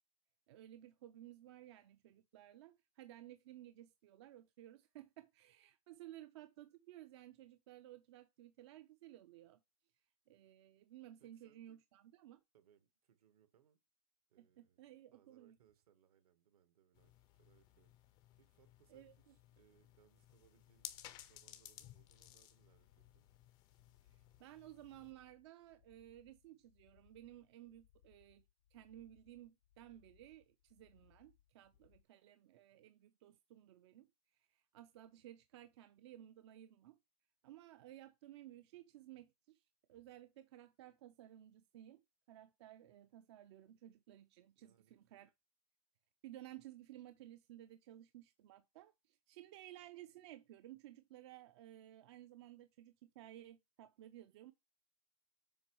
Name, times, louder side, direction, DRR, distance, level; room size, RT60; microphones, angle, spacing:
voice 1, 0.5-9.6 10.3-12.4 14.4-15.6 18.9-19.3 24.0-28.4 28.7-34.1 34.5-37.0 37.4-39.6 39.9-45.3 46.2-54.5, right 13 dB, 45° right, 0.5 m, -57 dB
voice 2, 11.2-11.8 12.5-13.8 14.3-17.9 18.4-21.0 21.3-23.3 31.7-32.0 44.5-45.3, right 9 dB, 75° right, 1.3 m, -73 dB
sound 1, 17.0-25.1, left 13 dB, 25° left, 0.5 m, -58 dB
sound 2, 20.4-32.0, left 12 dB, 60° left, 0.7 m, -73 dB
7.1 x 3.0 x 4.6 m
hypercardioid pair, 155°, 19 cm